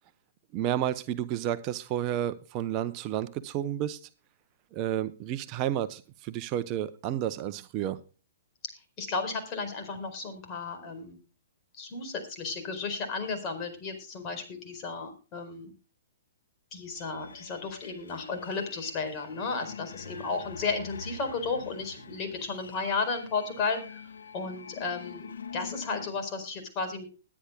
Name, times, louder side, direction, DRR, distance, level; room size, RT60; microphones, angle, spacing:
voice 1, 0.5-4.0 4.7-8.0, right 11 dB, 35° right, 0.8 m, -31 dB
voice 2, 9.0-11.2 11.8-15.7 16.7-24.0 24.3-27.0, left 4 dB, 30° left, 4.6 m, -33 dB
sound 1, 17.0-26.1, left 5 dB, 80° left, 1.9 m, -45 dB
21.5 x 9.7 x 2.3 m
hypercardioid pair, 125°, 0 cm